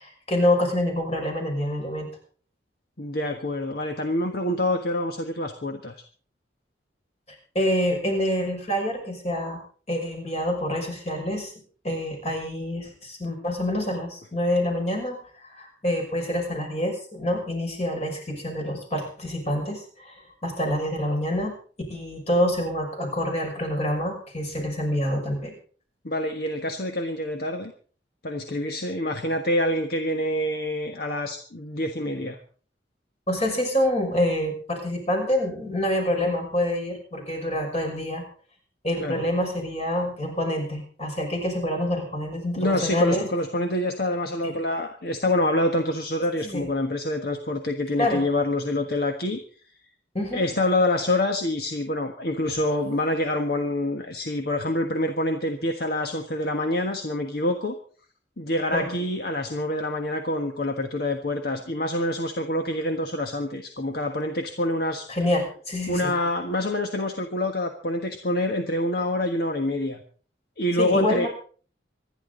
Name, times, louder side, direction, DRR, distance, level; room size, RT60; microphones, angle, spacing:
voice 1, 0.0-2.1 7.5-9.6 9.9-11.5 11.8-21.6 21.9-25.5 33.3-38.2 38.8-43.3 44.4-44.5 46.4-46.7 48.0-48.2 50.1-50.4 58.7-58.9 65.1-66.1 70.8-71.3, left 1 dB, 35° left, 2 dB, 6.0 m, -26 dB
voice 2, 3.0-6.0 26.0-27.7 28.2-32.4 39.0-39.2 42.6-49.4 50.3-57.8 58.4-65.1 65.9-70.0 70.6-71.3, left 1 dB, 55° left, 5 dB, 1.4 m, -26 dB
26.5 x 11.0 x 3.9 m, 0.43 s
head